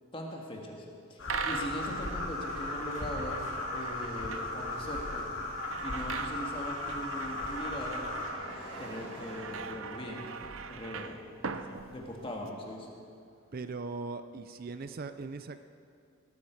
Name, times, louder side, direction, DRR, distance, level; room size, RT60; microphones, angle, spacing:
voice 1, 0.1-0.8 1.1-5.3 5.8-8.0 8.8-10.3 10.7-11.3 11.7-12.9, equal, 25° left, -1 dB, 2.0 m, -40 dB
sound 1, 1.2-8.3, left 2 dB, 80° left, 2.4 m, -37 dB
sound 2, 1.3-12.5, right 5 dB, 80° right, 0.7 m, -41 dB
Car passing by, 2.1-13.5, equal, 50° left, 3.8 m, -53 dB
voice 2, 13.5-15.6, right 3 dB, 45° right, 10 dB, 0.4 m, -39 dB
18.0 x 12.0 x 4.7 m, 2.4 s
head